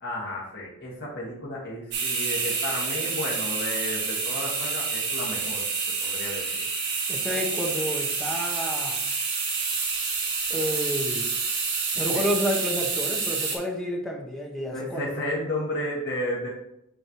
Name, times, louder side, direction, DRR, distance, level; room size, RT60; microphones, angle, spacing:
voice 1, 0.0-5.6 6.0-6.6 14.7-16.5, left 1 dB, 50° left, -5 dB, 1.7 m, -32 dB
sound 1, 1.9-13.6, right 4 dB, 55° right, 1.7 m, -28 dB
voice 2, 7.1-9.0 10.5-11.3 11.9-15.0, equal, ahead, 0 dB, 1.0 m, -30 dB
8.8 x 4.3 x 3.1 m, 0.79 s
head